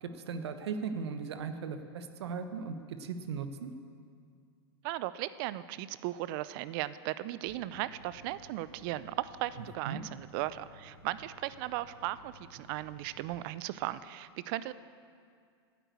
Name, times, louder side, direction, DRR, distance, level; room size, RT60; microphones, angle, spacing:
voice 1, 0.0-3.7 9.8-10.0, right 5 dB, 80° right, 9 dB, 1.0 m, -38 dB
voice 2, 4.8-14.7, right 15 dB, 55° right, 16 dB, 0.5 m, -37 dB
sound 1, 7.5-13.3, equal, 20° right, 1.9 m, -57 dB
9.3 x 9.0 x 8.3 m, 2.2 s
hypercardioid pair, 110°, 14 cm